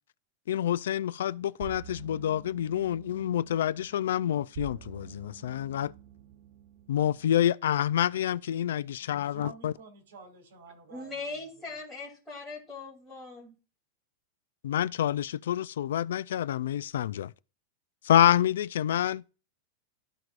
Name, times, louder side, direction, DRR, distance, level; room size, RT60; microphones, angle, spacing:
voice 1, 0.5-5.9 6.9-9.7 14.6-17.3 18.0-19.2, left 11 dB, 90° left, 0.3 m, -27 dB
sound 1, 1.6-7.3, right 9 dB, 40° right, 0.6 m, -48 dB
voice 2, 9.0-11.7, right 4 dB, 75° right, 2.6 m, -50 dB
voice 3, 10.9-13.5, left 3 dB, ahead, 3.0 m, -40 dB
13.0 x 4.7 x 2.5 m
supercardioid pair, 180°, 0 cm